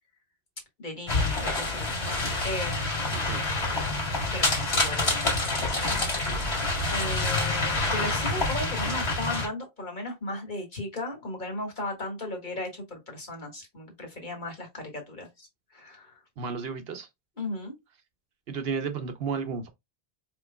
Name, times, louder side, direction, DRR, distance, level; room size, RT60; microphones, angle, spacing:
voice 1, 0.8-2.0 2.4-3.4 4.3-5.8 6.9-16.2 17.4-17.7, left 2 dB, 50° left, 1.7 m, -36 dB
sound 1, 1.1-9.5, left 2 dB, 80° left, 2.3 m, -27 dB
voice 2, 3.1-3.4 8.0-8.1 16.4-17.1 18.5-19.7, right 5 dB, 75° right, 1.0 m, -33 dB
4.6 x 3.6 x 2.2 m
omnidirectional pair, 1.0 m